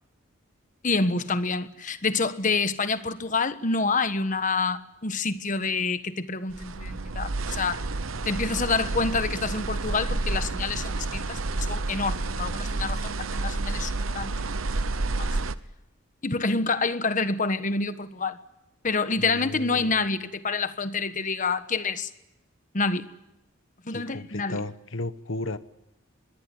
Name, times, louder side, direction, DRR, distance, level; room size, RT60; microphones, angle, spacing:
voice 1, 0.8-7.8 8.2-14.5 15.2-15.3 16.2-18.4 18.8-22.1 22.7-23.1 23.8-24.6, left 4 dB, 40° left, 1.3 m, -27 dB
sound 1, 6.5-15.6, right 2 dB, 85° right, 1.0 m, -30 dB
voice 2, 19.2-20.0 23.9-25.6, left 2 dB, 70° left, 1.2 m, -34 dB
24.0 x 22.0 x 9.6 m
head